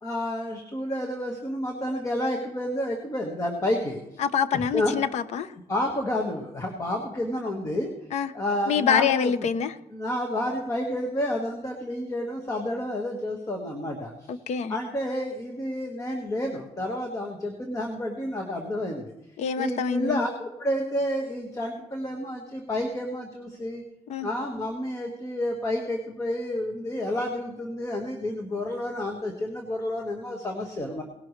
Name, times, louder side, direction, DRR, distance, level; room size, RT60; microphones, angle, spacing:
voice 1, 0.0-4.2 4.5-4.9 5.7-7.9 8.3-9.3 9.9-14.3 14.7-19.1 19.6-23.8 24.2-31.0, left 1 dB, 30° left, 2 dB, 1.7 m, -30 dB
voice 2, 4.2-5.5 8.1-8.3 8.7-9.7 14.3-14.7 19.4-20.2 24.1-24.3, left 7 dB, 80° left, 14 dB, 0.8 m, -26 dB
19.0 x 11.5 x 3.3 m, 0.90 s
cardioid pair, 130°, 11 cm